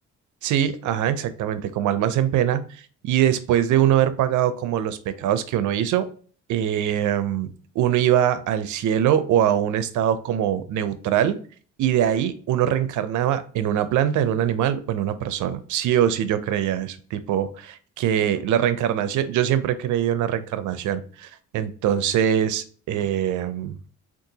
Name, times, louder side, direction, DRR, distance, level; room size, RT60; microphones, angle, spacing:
voice 1, 0.4-6.1 6.5-11.4 11.8-23.8, right 10 dB, 75° right, 12 dB, 0.5 m, -23 dB
3.7 x 2.5 x 2.7 m, 0.42 s
cardioid pair, 90°, 30 cm